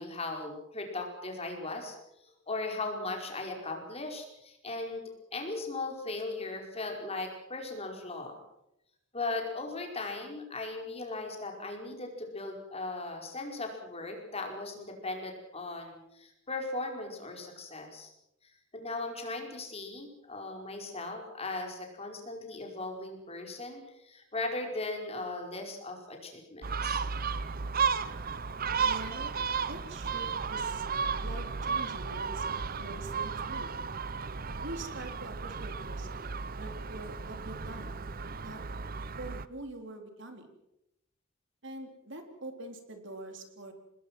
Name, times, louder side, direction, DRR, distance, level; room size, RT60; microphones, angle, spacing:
voice 1, 0.0-2.0 2.2-8.4 9.1-18.1 18.4-27.0, left 2 dB, 30° left, 2 dB, 5.1 m, -38 dB
Gull seagull, 26.6-39.5, right 5 dB, 45° right, 0.9 m, -34 dB
voice 2, 28.8-29.3 29.6-30.9 31.2-33.7 34.6-38.0 38.4-38.6 39.2-40.5 41.6-43.7, right 2 dB, 65° right, 6 dB, 3.7 m, -44 dB
25.5 x 20.5 x 6.3 m, 0.84 s
head